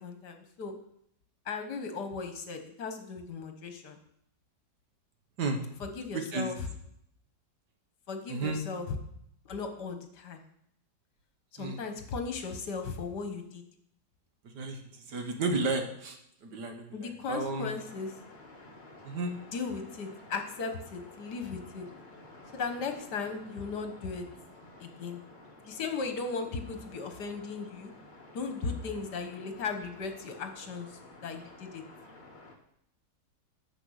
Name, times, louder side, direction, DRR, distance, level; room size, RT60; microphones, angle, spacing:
voice 1, 0.0-0.7 1.5-4.0 5.8-6.5 8.1-9.0 9.5-10.4 11.5-13.6 16.9-18.1 19.5-21.9 22.5-24.2 24.8-25.2 25.7-27.9 28.3-30.9 31.2-31.8, left 4 dB, 65° left, 6 dB, 1.7 m, -37 dB
voice 2, 6.1-6.5 8.3-8.6 11.6-11.8 14.4-17.7 19.0-19.3, right 3 dB, 65° right, 5 dB, 1.8 m, -33 dB
sound 1, 17.3-32.5, left 2 dB, 30° left, 1.5 m, -52 dB
9.9 x 6.9 x 6.4 m, 0.73 s
omnidirectional pair, 1.9 m